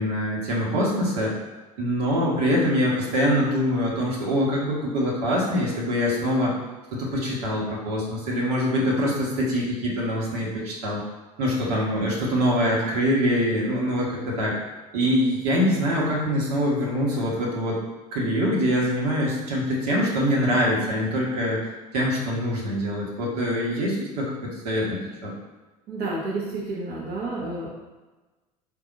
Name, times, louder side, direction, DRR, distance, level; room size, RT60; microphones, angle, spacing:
voice 1, 0.0-1.3 1.8-6.5 6.9-11.0 11.4-14.6 14.9-17.8 18.1-21.6 21.9-25.3, equal, 70° right, -4 dB, 1.2 m, -24 dB
voice 2, 25.9-27.7, right 2 dB, 50° right, -5 dB, 0.9 m, -30 dB
3.8 x 2.6 x 4.0 m, 1.2 s
hypercardioid pair, 75°, 20 cm